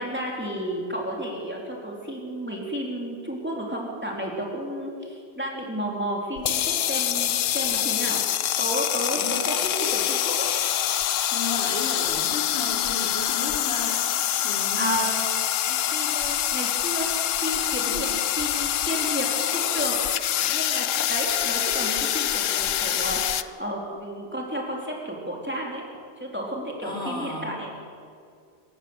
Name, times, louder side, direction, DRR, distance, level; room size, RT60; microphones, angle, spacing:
voice 1, 0.0-8.2 8.6-10.5 14.4-15.1 15.9-17.1 17.4-18.1 18.4-20.0 20.5-25.8 26.2-27.7, right 1 dB, 10° right, -2 dB, 4.0 m, -32 dB
sound 1, 6.4-23.4, left 11 dB, 85° left, 1.1 m, -25 dB
voice 2, 9.1-9.4 11.3-14.2 14.4-15.2 15.6-15.9 17.9-18.0 26.8-27.7, left 2 dB, 60° left, -2 dB, 4.2 m, -34 dB
26.0 x 15.5 x 8.2 m, 2.3 s
omnidirectional pair, 1.3 m